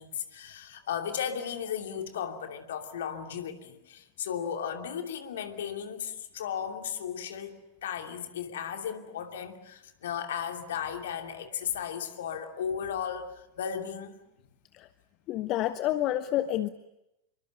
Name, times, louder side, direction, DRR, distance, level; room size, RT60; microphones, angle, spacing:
voice 1, 0.0-7.5 7.8-14.1, left 8 dB, 60° left, 5 dB, 2.8 m, -35 dB
voice 2, 15.3-16.7, left 13 dB, 35° left, 13 dB, 0.9 m, -28 dB
27.5 x 24.0 x 8.1 m, 0.90 s
figure-of-eight pair, 90°, 0 cm